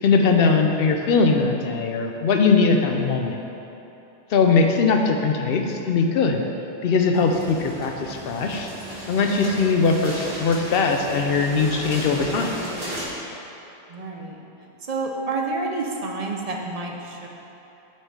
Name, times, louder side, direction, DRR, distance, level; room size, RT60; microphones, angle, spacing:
voice 1, 0.0-3.4 4.3-6.4 6.8-8.7 9.1-12.5, left 4 dB, 70° left, 3 dB, 0.7 m, -20 dB
sound 1, 7.1-13.1, equal, 25° right, 1.1 m, -35 dB
voice 2, 13.9-17.3, right 3 dB, 45° right, 0 dB, 0.6 m, -29 dB
6.3 x 4.3 x 4.7 m, 3.0 s
omnidirectional pair, 1.1 m